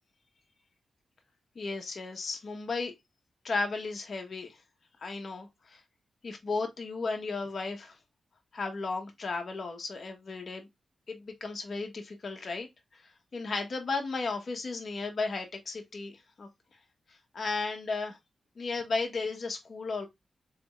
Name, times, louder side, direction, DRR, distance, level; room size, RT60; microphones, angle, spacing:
voice 1, 1.5-2.9 3.4-4.6 5.0-5.8 6.2-8.0 8.5-10.7 11.1-12.7 13.3-16.5 17.3-18.2 18.6-20.1, left 3 dB, 55° left, 1.1 m, -34 dB
3.5 x 3.4 x 3.1 m
cardioid pair, 80°, 0 cm